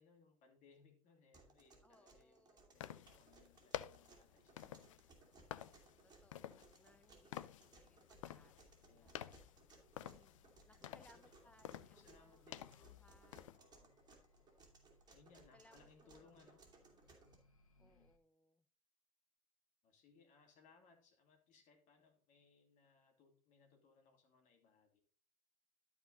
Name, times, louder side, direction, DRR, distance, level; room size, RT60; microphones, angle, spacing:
voice 1, 0.0-5.1 8.9-9.3 10.7-11.5 11.9-13.0 13.6-13.9 15.1-16.6 17.8-18.1 19.8-25.0, left 5 dB, 45° left, 3 dB, 2.7 m, -69 dB
sound 1, 1.3-17.4, right 3 dB, 25° right, 2.8 m, -65 dB
voice 2, 1.8-2.8 6.0-9.2 10.1-13.5 15.5-16.5 16.9-17.0 17.8-18.6, left 1 dB, 10° left, 11 dB, 0.6 m, -70 dB
sound 2, 2.7-13.6, left 12 dB, 70° left, 0.5 m, -52 dB
sound 3, 8.0-18.2, left 2 dB, 90° left, 0.9 m, -73 dB
12.5 x 4.7 x 3.9 m, 0.42 s
hypercardioid pair, 75°, 17 cm